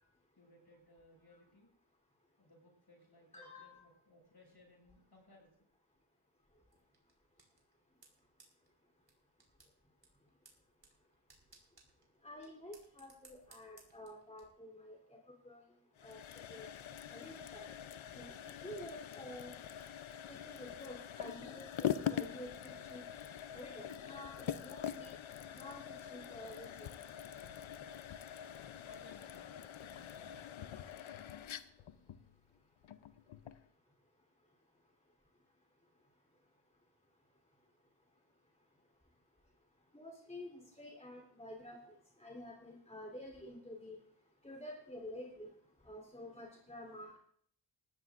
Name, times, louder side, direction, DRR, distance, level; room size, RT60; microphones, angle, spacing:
voice 1, 0.4-1.7 2.4-5.7 28.8-30.8 38.1-38.3 38.7-38.8, left 2 dB, 55° left, -1 dB, 7.3 m, -63 dB
voice 2, 3.3-3.8 12.2-15.2 15.4-15.6 16.0-16.2 16.5-16.7 17.1-17.7 18.1-19.5 20.3-23.0 23.5-25.2 25.5-26.9 39.9-41.8 42.2-44.0 44.4-45.5 45.8-47.2, left 1 dB, 15° left, -1 dB, 3.6 m, -50 dB
sound 1, 6.7-14.4, right 3 dB, 55° right, 4.6 m, -66 dB
sound 2, 16.0-33.7, left 9 dB, 85° left, 0.7 m, -44 dB
19.0 x 14.5 x 2.6 m, 0.65 s
cardioid pair, 60°, 47 cm